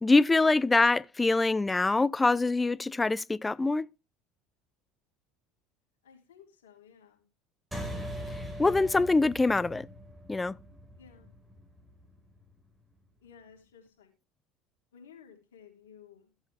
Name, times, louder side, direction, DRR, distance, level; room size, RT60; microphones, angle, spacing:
voice 1, 0.0-3.9 8.6-9.9 10.3-10.6, left 3 dB, 15° left, 0.5 m, -24 dB
voice 2, 6.0-7.2 11.0-11.3 13.2-14.1 14.9-16.3, left 7 dB, 90° left, 3.2 m, -55 dB
sound 1, 7.7-12.5, equal, 10° right, 5.2 m, -41 dB
14.5 x 8.0 x 3.5 m
hypercardioid pair, 80°, 0 cm